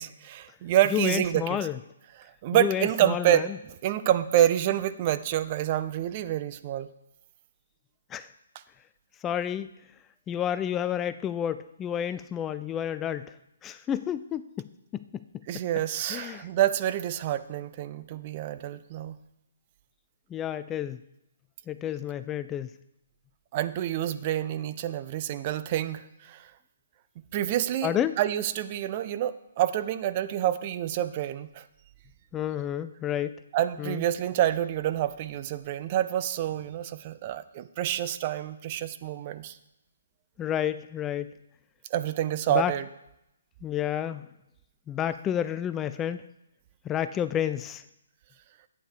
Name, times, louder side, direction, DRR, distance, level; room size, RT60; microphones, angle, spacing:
voice 1, 0.0-1.7 2.4-6.9 15.5-19.2 23.5-26.5 27.3-31.6 33.5-39.6 41.9-42.9, right 12 dB, 35° right, 12 dB, 0.5 m, -27 dB
voice 2, 0.9-1.8 2.5-3.5 8.1-8.3 9.2-9.7 10.3-13.3 13.6-14.7 14.9-15.2 16.1-16.5 20.3-21.0 21.7-22.7 27.8-28.2 32.3-33.3 33.8-34.0 40.4-41.3 42.5-42.7 43.6-44.3 44.9-46.2 46.9-47.8, left 10 dB, 15° left, 12 dB, 0.3 m, -30 dB
11.5 x 8.6 x 4.7 m, 0.86 s
figure-of-eight pair, 130°, 0 cm